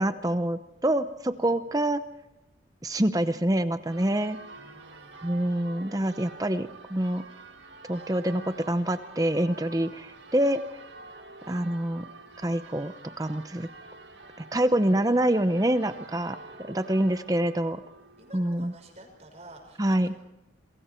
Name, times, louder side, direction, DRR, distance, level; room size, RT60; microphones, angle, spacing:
voice 1, 0.0-2.0 2.8-4.4 5.2-7.2 7.9-10.6 11.5-12.1 12.4-13.7 14.5-17.8 18.3-18.7 19.8-20.1, right 1 dB, 20° right, 10 dB, 0.8 m, -26 dB
voice 2, 1.3-1.6 4.6-5.5 16.1-16.5 17.0-17.5 18.2-20.2, right 1 dB, 35° right, 3 dB, 5.8 m, -51 dB
Church bell, 3.9-19.6, right 3 dB, 75° right, 1.9 m, -48 dB
28.0 x 22.5 x 4.5 m, 0.93 s
head